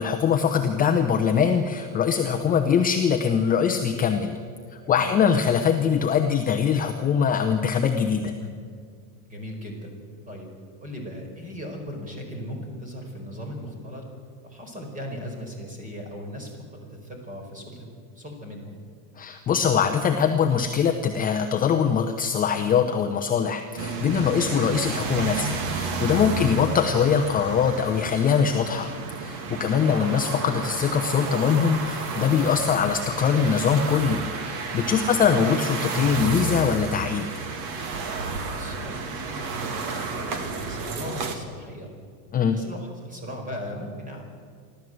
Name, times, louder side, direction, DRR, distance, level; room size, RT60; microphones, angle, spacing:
voice 1, 0.0-4.4 4.9-8.3 19.2-28.9 29.2-37.3 42.3-42.6, left 7 dB, 20° left, 5 dB, 0.8 m, -22 dB
voice 2, 4.8-5.1 8.4-8.5 9.3-9.9 10.2-10.5 10.8-14.0 14.4-17.9 18.1-18.8 26.3-26.5 29.4-29.7 34.8-35.0 38.5-41.9 42.5-44.2, equal, 15° right, 3 dB, 4.9 m, -38 dB
sound 1, 23.8-41.4, right 4 dB, 45° right, 2.3 m, -31 dB
29.5 x 12.5 x 7.9 m, 2.1 s
supercardioid pair, 150°, 46 cm